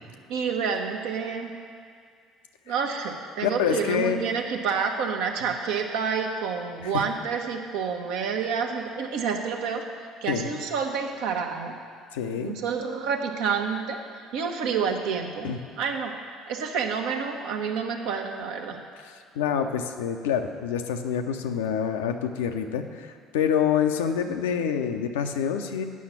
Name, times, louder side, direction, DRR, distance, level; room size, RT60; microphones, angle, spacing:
voice 1, 0.3-1.5 2.7-9.8 10.2-11.7 12.3-14.0 14.3-15.5 15.8-18.8, right 6 dB, 70° right, 3 dB, 0.9 m, -29 dB
voice 2, 3.4-4.2 10.3-10.5 12.1-12.6 15.4-15.6 18.7-18.8 19.0-25.8, left 8 dB, 80° left, 6 dB, 0.6 m, -27 dB
8.4 x 5.7 x 7.3 m, 2.1 s
hypercardioid pair, 60°, 0 cm